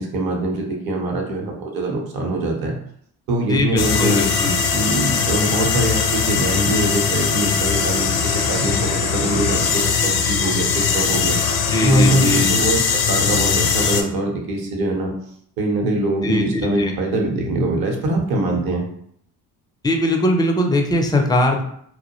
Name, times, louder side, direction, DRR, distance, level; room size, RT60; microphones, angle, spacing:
voice 1, 0.0-2.8 3.3-4.2 4.7-8.7 9.1-11.4 11.8-15.1 15.6-18.9, right 2 dB, 55° right, 1 dB, 0.8 m, -23 dB
voice 2, 3.5-4.6 11.7-12.5 16.2-16.9 19.8-21.6, left 1 dB, 10° left, 2 dB, 0.4 m, -20 dB
sound 1, 3.8-14.0, left 6 dB, 60° left, 0.5 m, -20 dB
2.2 x 2.0 x 2.9 m, 0.67 s
hypercardioid pair, 60°, 42 cm